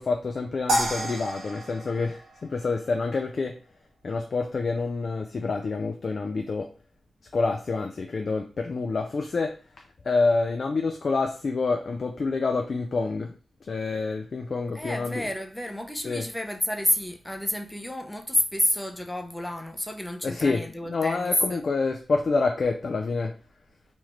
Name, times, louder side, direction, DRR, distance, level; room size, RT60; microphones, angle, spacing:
voice 1, 0.0-2.2 2.5-3.5 4.0-6.7 7.3-9.5 10.0-13.3 13.7-15.3 16.0-16.3 20.2-20.6 20.9-23.3, left 3 dB, 60° left, 0.4 m, -27 dB
sound 1, 0.7-3.1, right 1 dB, 80° right, 1.0 m, -30 dB
voice 2, 14.7-21.6, left 1 dB, 10° left, 0.6 m, -29 dB
3.0 x 2.4 x 3.1 m
cardioid pair, 50°, 0 cm